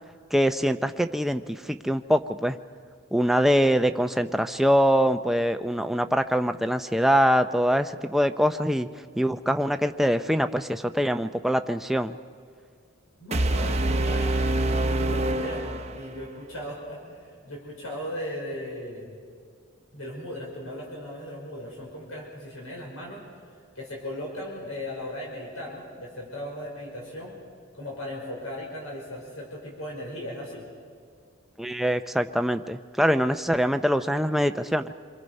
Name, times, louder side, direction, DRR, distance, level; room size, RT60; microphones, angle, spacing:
voice 1, 0.3-2.6 3.1-8.9 9.1-12.2 31.6-34.9, equal, ahead, 7 dB, 0.5 m, -23 dB
voice 2, 13.2-19.2 19.9-23.2 23.8-27.4 27.7-30.7, left 1 dB, 85° left, -2 dB, 5.2 m, -37 dB
sound 1, 13.3-16.4, right 1 dB, 30° right, 0.8 m, -26 dB
27.5 x 23.0 x 5.4 m, 2.1 s
head